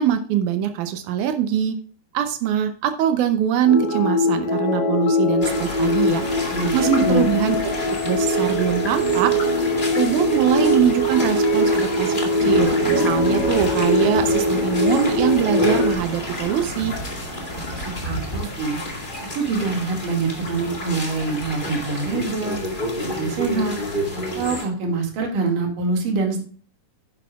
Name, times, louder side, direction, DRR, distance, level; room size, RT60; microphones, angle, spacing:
voice 1, 0.0-1.8 2.1-6.2 6.7-7.8 8.0-9.3 10.0-17.0, right 9 dB, 90° right, 7 dB, 1.7 m, -23 dB
sound 1, 3.7-16.0, left 1 dB, 80° left, 3.5 m, -21 dB
sound 2, 5.4-24.7, left 1 dB, 25° left, 1.1 m, -30 dB
voice 2, 6.5-7.3 17.7-18.8 19.3-22.6 23.0-23.7 24.4-26.4, right 4 dB, 60° right, 1 dB, 3.5 m, -25 dB
sound 3, 12.4-18.1, right 2 dB, 20° right, 3.7 m, -33 dB
10.5 x 10.0 x 2.4 m, 0.43 s
omnidirectional pair, 4.6 m